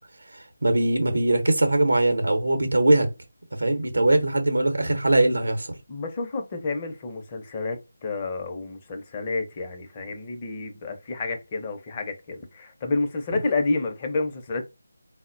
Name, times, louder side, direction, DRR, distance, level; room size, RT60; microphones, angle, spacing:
voice 1, 0.3-3.1 3.6-5.7, right 1 dB, 80° right, 0.7 m, -21 dB
voice 2, 5.9-14.6, left 3 dB, 25° left, 0.5 m, -29 dB
3.8 x 2.0 x 2.5 m
figure-of-eight pair, 160°, 0 cm